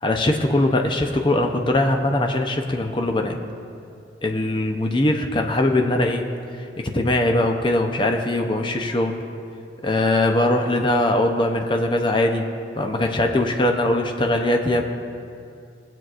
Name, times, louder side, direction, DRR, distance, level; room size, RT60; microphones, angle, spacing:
voice 1, 0.0-3.4 4.2-6.3 6.9-9.1 9.8-12.4 12.7-14.9, left 1 dB, 25° left, 3 dB, 0.6 m, -21 dB
19.5 x 7.6 x 2.5 m, 2.5 s
head